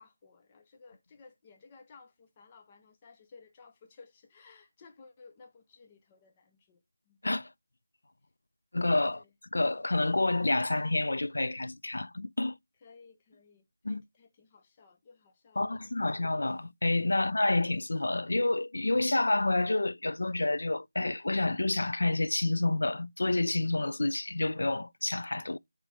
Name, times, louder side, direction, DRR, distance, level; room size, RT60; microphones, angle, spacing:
voice 1, 0.0-6.8 7.1-7.2 9.1-9.3 12.8-16.3, left 4 dB, 15° left, 0.5 m, -57 dB
voice 2, 8.7-9.2 9.5-12.6 13.8-14.0 15.6-25.6, left 2 dB, 70° left, 0.4 m, -29 dB
8.0 x 3.0 x 6.0 m
figure-of-eight pair, 175°, 0 cm